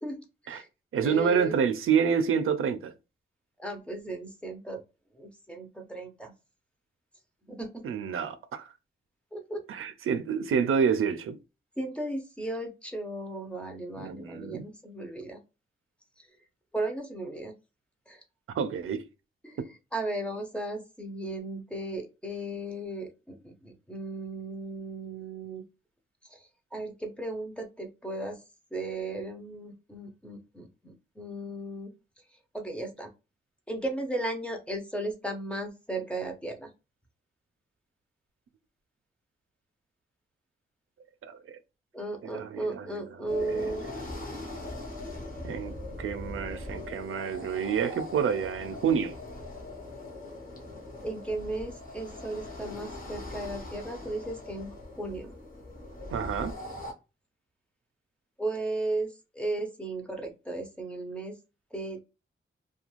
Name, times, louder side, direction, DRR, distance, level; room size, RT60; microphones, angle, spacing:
voice 1, 0.0-0.7 1.0-1.5 3.6-4.8 5.1-6.3 7.5-7.8 9.3-9.6 11.8-15.4 16.2-16.3 16.7-17.5 18.1-18.2 19.4-19.6 19.9-25.6 26.3-28.4 28.7-31.9 32.5-33.1 33.7-36.7 41.9-43.8 51.0-54.7 55.0-55.3 58.4-61.3 61.7-62.0, right 2 dB, 5° left, 0.6 m, -35 dB
voice 2, 0.9-2.9 7.8-8.7 9.7-11.4 14.0-14.6 18.5-19.0 41.2-41.3 42.3-43.0 43.4-43.7 45.4-49.2 56.1-56.5, right 7 dB, 90° right, 0.4 m, -28 dB
sound 1, 43.3-56.9, left 2 dB, 40° left, 0.8 m, -41 dB
2.4 x 2.3 x 2.9 m
wide cardioid pair, 140°, 21 cm